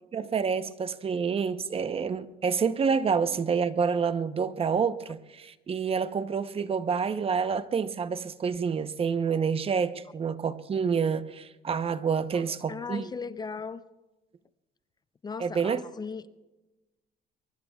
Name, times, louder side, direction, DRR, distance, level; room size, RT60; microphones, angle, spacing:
voice 1, 0.1-13.1 15.4-15.8, right 6 dB, 35° right, 0.8 m, -28 dB
voice 2, 12.3-13.8 15.2-16.3, left 5 dB, 25° left, 0.5 m, -38 dB
24.0 x 23.0 x 2.3 m
cardioid pair, 110°, 17 cm